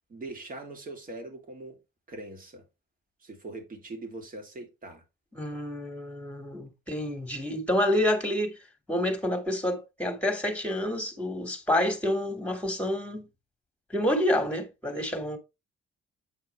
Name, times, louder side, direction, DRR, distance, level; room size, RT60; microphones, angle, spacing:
voice 1, 0.1-1.8 2.1-2.6 3.2-5.0, right 2 dB, 45° right, 2.7 m, -41 dB
voice 2, 5.3-8.6 8.9-13.3 13.9-15.4, left 1 dB, 5° left, 2.2 m, -28 dB
8.3 x 4.4 x 3.3 m
cardioid pair, 90°, 20 cm